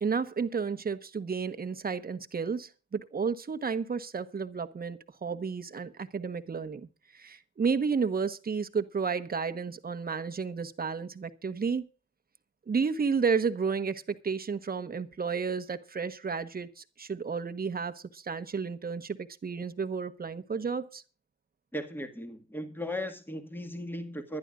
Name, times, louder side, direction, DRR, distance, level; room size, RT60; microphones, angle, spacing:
voice 1, 0.0-6.9 7.1-11.9 12.7-19.2 19.4-21.0, right 5 dB, 30° right, 1.3 m, -32 dB
voice 2, 21.7-24.4, left 1 dB, 5° left, 1.9 m, -37 dB
23.5 x 11.5 x 2.5 m
cardioid pair, 90°, 30 cm